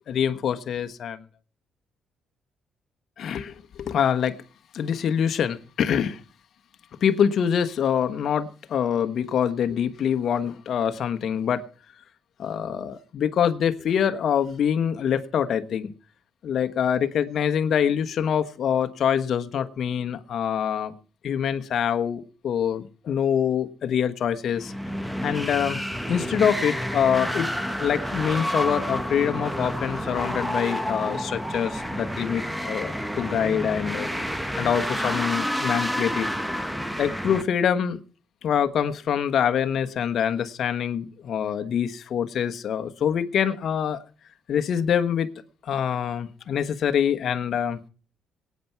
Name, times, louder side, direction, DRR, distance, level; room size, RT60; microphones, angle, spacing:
voice 1, 0.1-1.2 3.2-4.4 4.7-6.2 7.0-11.6 12.4-15.9 16.4-20.9 21.2-24.7 25.2-25.8 26.1-34.2 34.6-36.3 37.0-38.0 38.4-44.0 44.5-45.3 45.6-47.8, left 8 dB, 60° left, 1.2 m, -25 dB
sound 1, 24.5-37.4, equal, 5° right, 1.1 m, -29 dB
23.0 x 9.5 x 4.6 m
cardioid pair, 90°, 0 cm